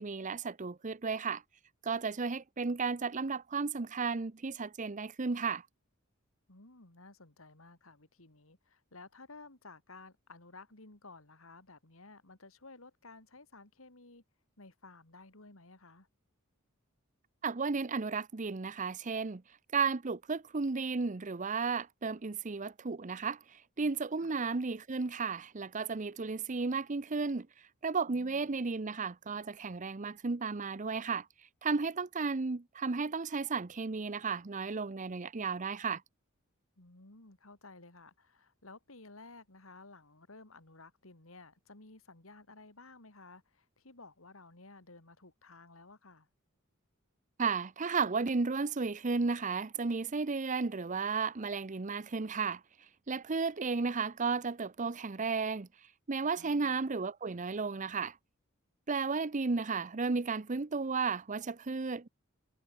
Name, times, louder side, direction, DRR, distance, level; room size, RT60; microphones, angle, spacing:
voice 1, 0.0-1.4 1.8-5.6 17.4-19.4 19.7-23.4 23.8-27.5 27.8-31.3 31.6-36.0 47.4-52.6 53.1-55.7 56.1-58.1 58.9-62.1, right 4 dB, 35° right, 0.7 m, -33 dB
voice 2, 6.5-14.2 14.6-16.1 24.2-24.3 28.1-28.5 36.8-46.3 56.3-56.8, left 3 dB, 70° left, 3.2 m, -55 dB
head